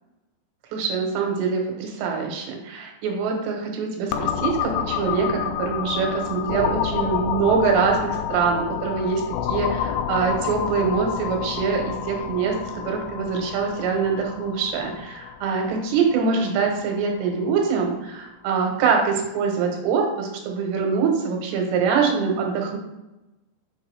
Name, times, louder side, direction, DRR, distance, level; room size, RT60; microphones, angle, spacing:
voice 1, 0.7-22.8, right 5 dB, 85° right, 1 dB, 3.5 m, -24 dB
sound 1, 4.1-17.7, left 9 dB, 85° left, 2.7 m, -29 dB
7.5 x 5.8 x 3.4 m, 0.98 s
omnidirectional pair, 4.9 m